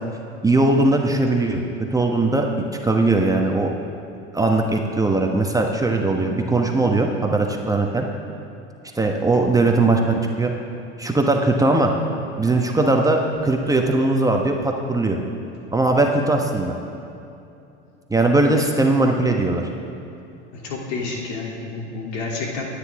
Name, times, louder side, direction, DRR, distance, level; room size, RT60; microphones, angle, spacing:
voice 1, 0.4-1.6 1.9-2.5 2.8-3.7 4.3-8.1 9.0-10.5 11.0-11.9 12.4-15.2 15.7-16.8 18.1-19.6, right 2 dB, 10° right, 2 dB, 1.2 m, -19 dB
voice 2, 20.5-22.6, left 3 dB, 65° left, -1 dB, 3.1 m, -29 dB
26.5 x 9.8 x 3.7 m, 2.7 s
hypercardioid pair, 85°, 34 cm